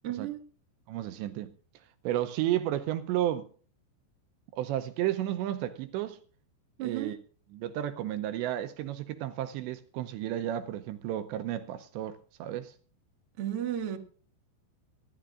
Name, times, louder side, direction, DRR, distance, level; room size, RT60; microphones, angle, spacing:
voice 1, 0.0-0.4 6.8-7.1 13.4-14.0, right 11 dB, 50° right, 1.7 m, -33 dB
voice 2, 0.9-1.5 2.0-3.5 4.5-6.2 6.8-7.2 7.5-12.7, right 12 dB, 80° right, 2.8 m, -32 dB
25.0 x 14.5 x 2.5 m
omnidirectional pair, 5.4 m